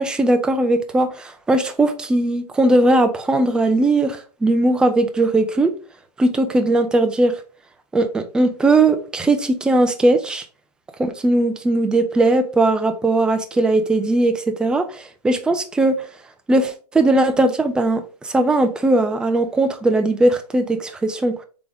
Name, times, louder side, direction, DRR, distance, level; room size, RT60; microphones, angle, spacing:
voice 1, 0.0-5.7 6.2-7.3 7.9-10.5 11.0-16.0 16.5-21.3, right 2 dB, 5° right, 0.3 m, -19 dB
3.8 x 3.6 x 3.4 m
hypercardioid pair, 130°, 21 cm